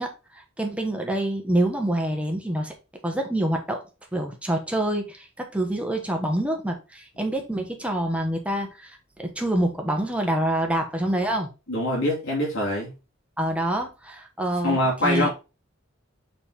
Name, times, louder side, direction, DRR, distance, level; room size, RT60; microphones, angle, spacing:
voice 1, 0.0-2.7 3.0-3.8 4.1-8.9 9.2-11.5 13.4-15.3, right 1 dB, 5° right, 1.2 m, -26 dB
voice 2, 11.7-12.9 14.6-15.3, left 1 dB, 70° left, 2.4 m, -24 dB
5.4 x 4.3 x 4.1 m
head